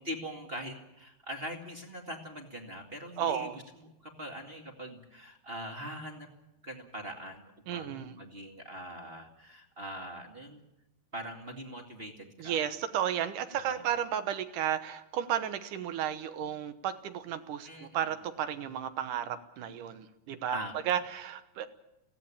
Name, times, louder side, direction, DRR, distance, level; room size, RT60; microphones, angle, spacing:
voice 1, 0.0-6.3 6.6-10.6 11.1-12.7 13.6-13.9 17.6-18.1 20.5-20.9, equal, 20° right, 3 dB, 1.6 m, -42 dB
voice 2, 3.2-3.6 7.7-8.1 12.4-20.6 20.9-21.7, right 9 dB, 70° right, 11 dB, 2.4 m, -33 dB
21.0 x 16.5 x 8.8 m, 0.94 s
omnidirectional pair, 4.3 m